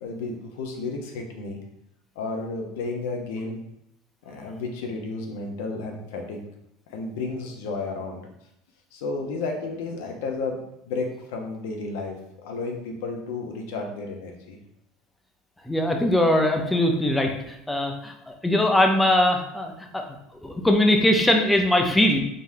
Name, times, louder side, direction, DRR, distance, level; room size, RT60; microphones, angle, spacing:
voice 1, 0.0-1.6 2.2-3.6 4.2-6.4 6.9-8.2 8.9-10.6 10.8-12.2 12.4-14.6, left 3 dB, 80° left, 2 dB, 0.8 m, -32 dB
voice 2, 15.7-20.0 20.4-22.2, left 1 dB, 5° left, 3 dB, 0.6 m, -21 dB
3.8 x 3.4 x 2.7 m, 0.80 s
supercardioid pair, 110°, 0 cm